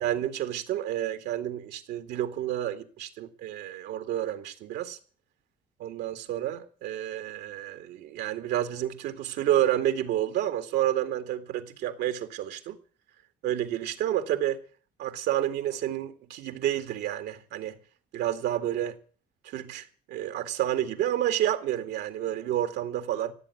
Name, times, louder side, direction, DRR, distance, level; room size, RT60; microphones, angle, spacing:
voice 1, 0.0-5.0 5.8-12.8 13.4-14.6 15.0-17.8 18.1-19.0 19.4-23.3, right 12 dB, 80° right, 2.2 m, -30 dB
16.5 x 8.3 x 9.6 m
cardioid pair, 110°, 17 cm